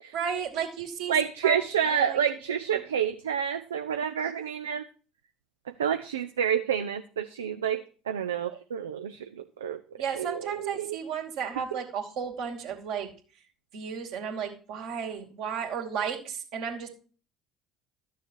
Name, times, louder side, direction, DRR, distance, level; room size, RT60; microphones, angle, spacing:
voice 1, 0.1-1.1 1.4-1.6 1.9-2.2 2.7-2.8 10.0-13.1 13.7-16.9, right 7 dB, 65° right, 2 dB, 2.5 m, -33 dB
voice 2, 1.1-4.8 5.8-9.8 10.1-11.0 11.7-11.8, right 8 dB, 80° right, 8 dB, 0.5 m, -29 dB
12.5 x 7.0 x 4.5 m, 0.39 s
figure-of-eight pair, 60°, 0 cm